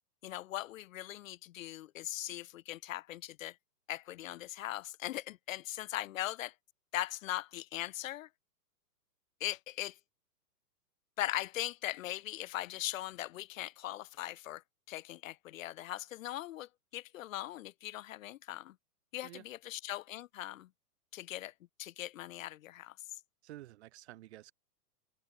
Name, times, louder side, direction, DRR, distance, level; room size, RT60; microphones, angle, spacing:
voice 1, 0.2-3.6 3.9-6.5 6.9-8.3 9.4-10.0 11.2-14.6 14.9-18.8 19.1-20.7 21.1-21.5 21.8-23.0, left 14 dB, 60° left, 0.5 m, -40 dB
voice 2, 23.4-24.5, right 15 dB, 45° right, 0.7 m, -51 dB
open air
hypercardioid pair, 150°, 47 cm